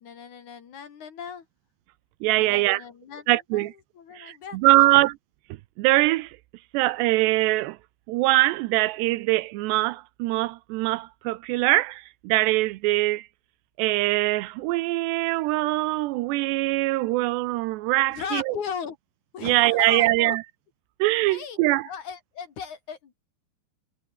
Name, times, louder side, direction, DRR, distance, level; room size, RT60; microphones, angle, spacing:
voice 1, 0.0-1.4 2.4-3.7 4.0-5.0 18.1-19.0 19.3-20.4 21.3-21.6 21.9-23.1, left 7 dB, 50° left, 3.2 m, -37 dB
voice 2, 2.2-2.8 3.3-3.7 4.1-5.2 5.8-6.4 6.7-7.8 8.1-13.3 13.8-18.6 19.4-20.4 21.0-21.9, right 19 dB, 85° right, 2.9 m, -23 dB
omnidirectional pair, 4.8 m